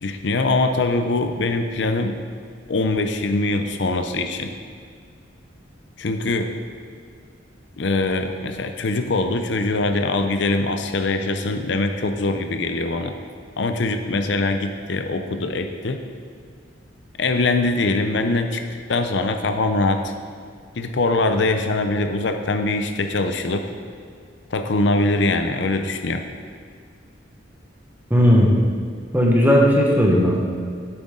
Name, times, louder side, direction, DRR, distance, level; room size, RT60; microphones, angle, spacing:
voice 1, 0.0-2.2 2.7-4.5 6.0-6.5 7.8-13.1 13.6-16.0 17.2-18.6 18.9-20.1 20.7-23.6 24.5-26.3, left 2 dB, 65° left, 6 dB, 0.6 m, -22 dB
voice 2, 28.1-28.5 29.1-30.4, equal, 10° right, -2 dB, 1.2 m, -15 dB
9.8 x 7.9 x 3.8 m, 2.2 s
head